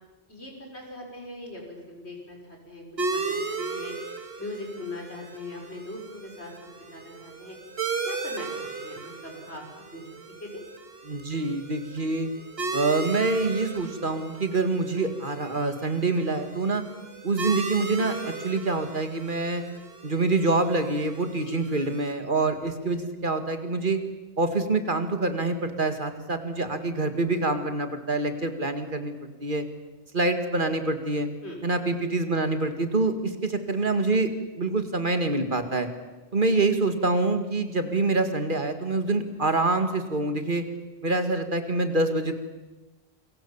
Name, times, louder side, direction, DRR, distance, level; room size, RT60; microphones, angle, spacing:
voice 1, 0.3-2.8 3.1-3.9 4.4-6.5 6.9-7.6 8.0-9.6 9.9-10.0 10.4-10.6 21.4-21.6 31.4-31.6, left 2 dB, 90° left, 1 dB, 6.4 m, -40 dB
sound 1, 3.0-22.1, right 4 dB, 70° right, 2.2 m, -36 dB
voice 2, 11.1-12.3 12.7-16.8 17.2-19.6 20.0-24.0 24.4-29.1 29.4-29.6 30.1-31.3 31.6-34.3 34.6-35.9 36.3-40.7 41.0-42.3, right 2 dB, 50° right, 8 dB, 2.3 m, -26 dB
28.5 x 23.5 x 7.3 m, 1.2 s
omnidirectional pair, 1.1 m